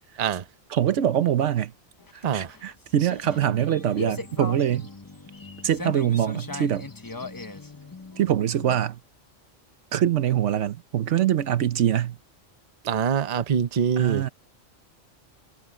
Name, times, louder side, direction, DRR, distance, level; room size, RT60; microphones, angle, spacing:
voice 1, 0.7-1.7 2.1-4.9 5.6-6.9 8.2-9.0 9.9-12.2 14.0-14.3, right 10 dB, 75° right, 1.1 m, -24 dB
sound 1, 2.0-8.8, left 2 dB, 20° left, 0.8 m, -39 dB
voice 2, 2.2-2.6 12.8-14.2, right 7 dB, 40° right, 0.7 m, -24 dB
omnidirectional pair, 1.3 m